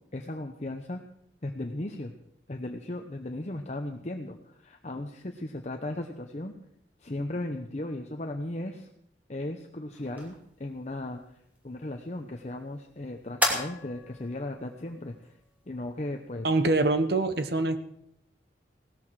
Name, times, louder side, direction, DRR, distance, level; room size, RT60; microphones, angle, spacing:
voice 1, 0.1-1.0 1.4-2.1 2.5-6.5 7.0-8.9 9.3-11.2 11.6-15.3 15.7-16.5, left 1 dB, 40° left, 4 dB, 0.9 m, -36 dB
sound 1, 9.9-16.8, left 1 dB, 10° right, 2.7 m, -37 dB
voice 2, 16.4-17.8, right 2 dB, 60° right, 10 dB, 1.2 m, -24 dB
17.0 x 13.5 x 4.8 m, 0.73 s
head